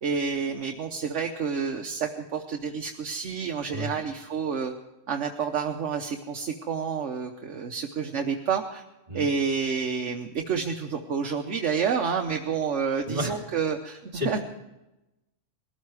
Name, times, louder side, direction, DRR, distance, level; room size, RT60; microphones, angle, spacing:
voice 1, 0.0-4.7 5.1-8.8 9.1-14.4, right 6 dB, 70° right, 3 dB, 1.3 m, -29 dB
voice 2, 13.0-13.4 14.1-14.4, equal, 45° right, 1 dB, 3.2 m, -31 dB
20.5 x 13.5 x 4.8 m, 0.96 s
omnidirectional pair, 1.3 m